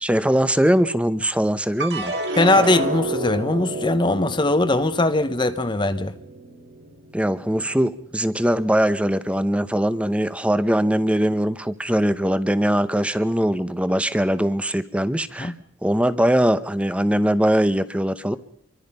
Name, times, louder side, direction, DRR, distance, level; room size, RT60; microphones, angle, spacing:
voice 1, 0.0-2.1 7.1-15.5 15.8-18.4, equal, 5° right, 0.8 m, -21 dB
sound 1, 1.8-8.2 8.7-9.4, right 2 dB, 55° right, 3.9 m, -30 dB
voice 2, 2.4-6.1 15.4-15.5, left 2 dB, 25° left, 0.9 m, -20 dB
26.5 x 24.0 x 5.5 m
head